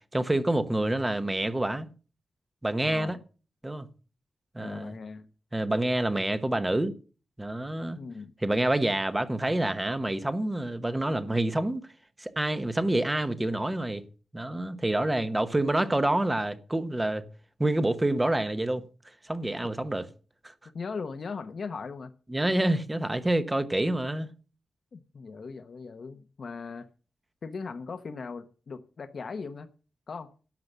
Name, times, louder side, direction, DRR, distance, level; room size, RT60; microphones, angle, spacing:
voice 1, 0.1-1.9 2.6-3.2 3.6-3.9 4.5-4.9 5.5-6.9 7.4-8.0 8.4-11.8 12.2-14.0 14.3-17.2 17.6-18.8 19.2-20.1 20.4-20.5 22.3-24.3, right 1 dB, 10° right, 1.0 m, -27 dB
voice 2, 2.8-3.2 4.6-5.3 8.0-8.3 20.7-22.1 24.9-26.9 27.4-29.7 30.1-30.3, left 5 dB, 45° left, 1.0 m, -39 dB
12.0 x 7.7 x 6.7 m
wide cardioid pair, 160°, 0 cm